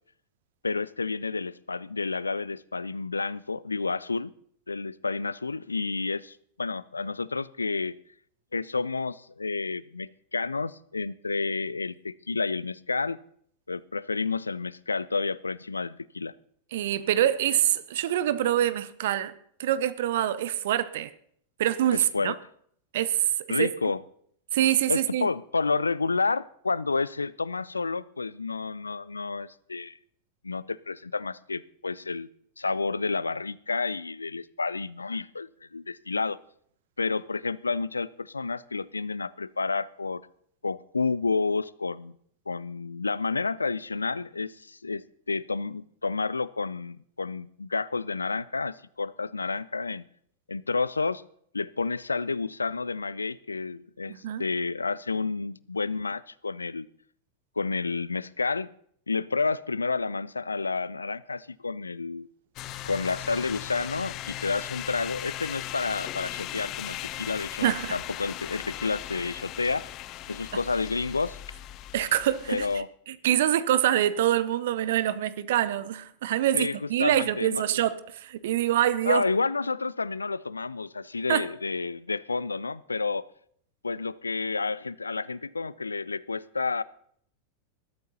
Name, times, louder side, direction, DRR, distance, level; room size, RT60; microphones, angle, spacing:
voice 1, 0.6-4.3 4.7-8.0 8.5-13.2 13.7-16.3 21.9-22.4 23.5-24.0 24.9-30.0 30.4-32.3 32.6-36.4 37.0-40.2 40.6-42.1 42.5-50.0 50.5-51.2 51.5-56.9 57.6-58.7 59.1-62.3 62.8-69.9 70.3-71.4 72.5-72.9 76.5-77.8 79.0-83.3 83.8-86.8, left 4 dB, 80° left, 0.4 m, -30 dB
voice 2, 16.7-19.3 19.6-21.1 21.6-22.3 22.9-23.7 24.5-25.3 54.1-54.5 67.6-67.9 71.9-79.2 81.3-81.5, right 12 dB, 55° right, 0.7 m, -25 dB
sound 1, 62.6-72.8, left 14 dB, 40° left, 0.7 m, -38 dB
20.5 x 13.0 x 2.8 m
figure-of-eight pair, 90°, 0 cm